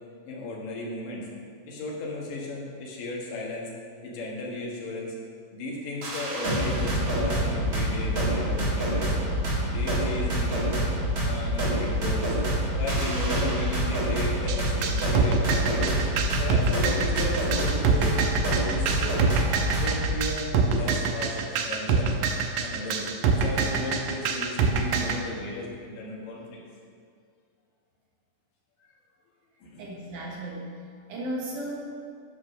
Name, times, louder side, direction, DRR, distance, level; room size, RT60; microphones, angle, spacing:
voice 1, 0.3-1.3 1.7-3.7 4.0-5.1 5.5-9.2 9.7-10.8 11.2-12.4 12.8-16.0 16.4-18.2 18.6-19.2 19.6-22.1 22.6-23.1 23.4-26.6 28.8-28.9 29.6-29.9, left 2 dB, 85° left, -3 dB, 3.2 m, -35 dB
sound 1, 6.0-20.2, right 1 dB, 40° right, 1.4 m, -26 dB
sound 2, 14.5-25.2, right 5 dB, 90° right, 2.3 m, -25 dB
voice 2, 29.8-30.7 31.1-31.7, right 1 dB, 70° right, -4 dB, 3.0 m, -34 dB
11.0 x 4.8 x 6.2 m, 2.2 s
omnidirectional pair, 3.7 m